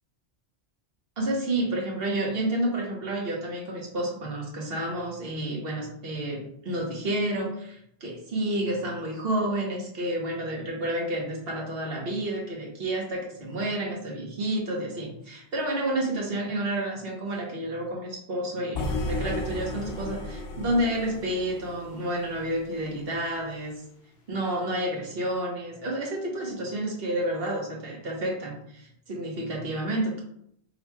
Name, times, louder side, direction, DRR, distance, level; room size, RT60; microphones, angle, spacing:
voice 1, 1.2-23.7 24.3-30.2, right 1 dB, 55° right, -1 dB, 1.2 m, -30 dB
sound 1, 18.7-22.9, left 2 dB, 70° left, 1.0 m, -34 dB
5.3 x 2.9 x 2.2 m, 0.72 s
omnidirectional pair, 1.2 m